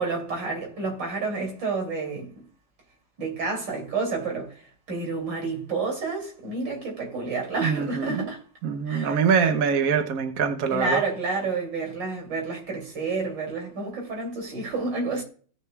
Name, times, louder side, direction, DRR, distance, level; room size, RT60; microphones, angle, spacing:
voice 1, 0.0-2.4 3.2-8.4 8.9-9.2 10.7-15.2, right 4 dB, 80° right, 3.5 m, -29 dB
voice 2, 7.6-8.3 8.6-11.0, right 6 dB, 55° right, 1.2 m, -24 dB
17.0 x 6.5 x 2.3 m
omnidirectional pair, 2.0 m